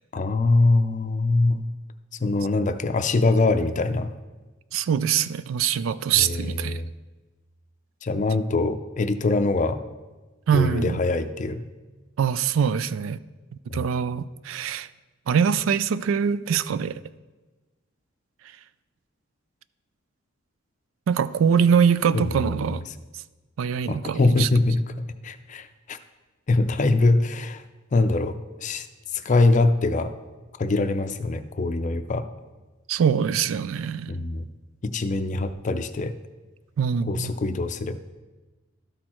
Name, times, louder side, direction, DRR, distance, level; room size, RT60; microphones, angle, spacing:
voice 1, 0.1-1.7 2.2-4.1 6.2-6.9 8.0-9.8 10.5-11.6 13.7-13.8 22.1-22.7 23.9-26.0 26.5-27.6 27.9-28.9 29.1-30.1 30.6-32.2 34.1-34.5 34.8-36.1 37.1-38.0, left 2 dB, 40° left, 10 dB, 0.4 m, -23 dB
voice 2, 4.7-6.8 10.5-11.0 12.2-13.2 13.7-14.9 15.3-17.0 21.1-22.8 23.6-24.5 32.9-34.2 36.8-37.3, right 7 dB, 85° right, 16 dB, 0.3 m, -23 dB
12.5 x 4.4 x 4.3 m, 1.2 s
head